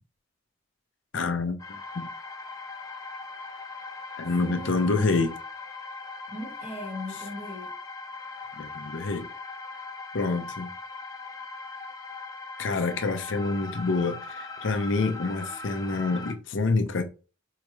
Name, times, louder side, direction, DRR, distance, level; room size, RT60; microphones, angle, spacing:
voice 1, 1.1-2.1 4.2-5.3 8.6-9.3 10.1-10.7 12.6-17.0, left 3 dB, 70° left, 0.6 m, -27 dB
sound 1, 1.6-16.3, left 3 dB, 20° left, 0.6 m, -40 dB
voice 2, 4.4-5.2 6.3-7.7 15.5-15.9, left 1 dB, 10° right, 1.5 m, -40 dB
4.7 x 3.1 x 2.2 m
head